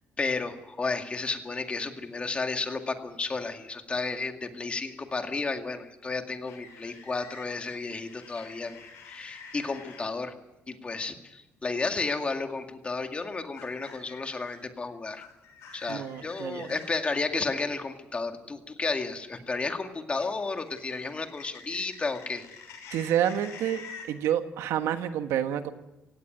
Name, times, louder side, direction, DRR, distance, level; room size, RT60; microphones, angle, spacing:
voice 1, 0.2-10.3 10.7-15.3 15.7-22.4, left 3 dB, 25° left, 6 dB, 2.1 m, -32 dB
sound 1, 6.5-10.0 12.0-12.3 13.5-14.6 15.1-17.1 20.2-24.1, left 5 dB, 90° left, 6.5 m, -47 dB
voice 2, 15.9-16.7 22.9-23.8 24.1-25.7, right 10 dB, 85° right, 9 dB, 1.4 m, -28 dB
17.5 x 17.0 x 9.2 m, 0.97 s
cardioid pair, 110°, 5 cm